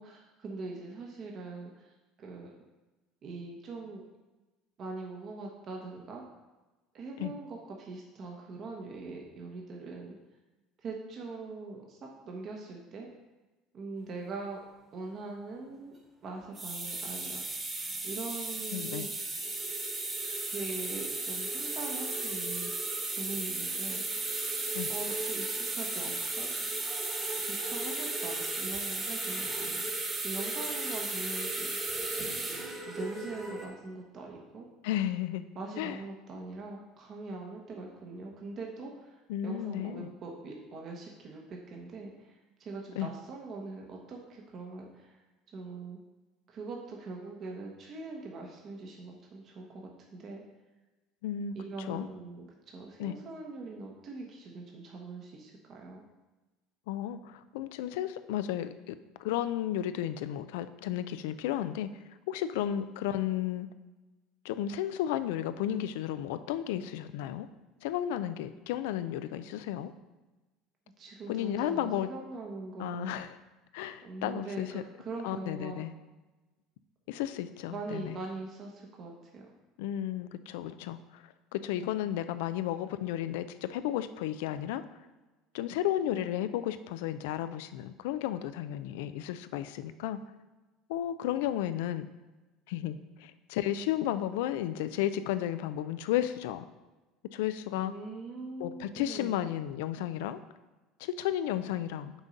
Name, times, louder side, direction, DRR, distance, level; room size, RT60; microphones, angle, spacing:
voice 1, 0.0-1.9 2.2-2.5 3.2-4.0 4.8-6.2 6.9-10.2 10.8-12.0 12.2-13.1 13.7-14.6 14.9-15.9 16.2-17.4 18.0-19.1 20.5-22.7 23.2-24.0 24.9-26.5 27.4-29.5 30.2-31.8 32.9-34.6 35.5-42.3 42.6-45.2 45.5-46.0 46.5-50.4 51.5-56.0 71.0-73.2 74.0-75.8 77.7-79.5 97.7-99.4, right 3 dB, 45° right, 0 dB, 1.1 m, -42 dB
sound 1, 16.4-33.7, right 2 dB, 25° right, 1.4 m, -35 dB
voice 2, 18.7-19.1 24.7-24.9 34.8-35.4 35.8-36.0 39.3-40.1 43.0-43.1 51.2-52.1 53.0-53.2 56.9-61.9 62.3-63.7 64.4-67.5 67.8-69.9 71.3-72.1 72.8-73.4 73.7-74.8 75.2-75.9 77.1-78.2 79.8-81.2 81.5-84.8 85.5-90.2 90.9-92.1 92.7-96.7 97.3-97.9 98.6-100.4 101.0-102.1, left 11 dB, 80° left, 12 dB, 0.3 m, -33 dB
6.1 x 3.8 x 5.3 m, 1.1 s
supercardioid pair, 90°, 0 cm